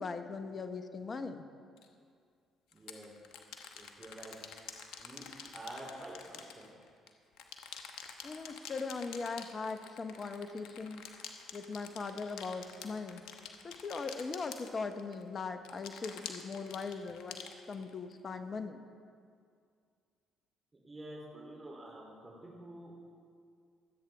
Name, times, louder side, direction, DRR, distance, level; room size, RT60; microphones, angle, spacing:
voice 1, 0.0-1.4 8.2-11.0 11.5-13.2 13.6-18.8, left 4 dB, 40° left, 9 dB, 1.1 m, -40 dB
sound 1, 1.8-1.9 2.7-7.1 7.4-15.2 15.7-18.1, left 7 dB, 75° left, 1.0 m, -48 dB
voice 2, 2.7-3.1 3.7-4.3 5.0-5.2 5.5-6.7 20.8-23.1, right 1 dB, 25° right, -3 dB, 3.2 m, -48 dB
24.5 x 8.4 x 3.5 m, 2.3 s
hypercardioid pair, 55°, 0 cm